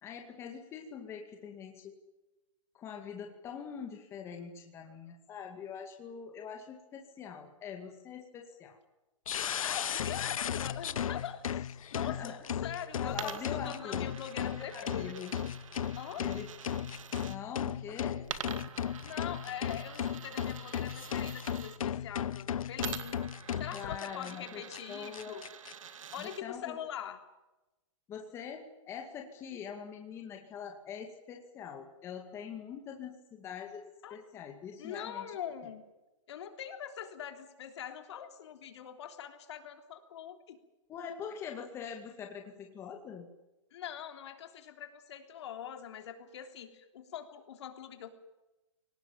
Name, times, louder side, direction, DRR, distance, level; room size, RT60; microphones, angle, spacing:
voice 1, 0.0-2.0 2.7-8.8 12.0-12.4 13.0-14.1 14.4-15.3 16.2-16.5 17.2-18.2 23.7-24.6 24.9-25.4 26.2-26.8 28.1-33.8 34.1-35.5 40.9-43.3, left 7 dB, 15° left, 2 dB, 2.2 m, -43 dB
sound 1, 9.3-24.3 24.7-24.8 25.1-25.7, left 9 dB, 90° left, 0.9 m, -36 dB
voice 2, 9.6-15.2 16.0-16.2 19.0-23.3 23.6-25.4 26.1-27.2 34.0-34.2 34.8-35.9 36.3-40.6 43.7-48.1, left 9 dB, 55° left, 6 dB, 3.5 m, -43 dB
Coin (dropping), 13.1-17.4 18.2-21.8 22.8-26.4, right 8 dB, 70° right, 2.4 m, -46 dB
23.5 x 19.0 x 9.0 m, 1.0 s
hypercardioid pair, 170°, 17 cm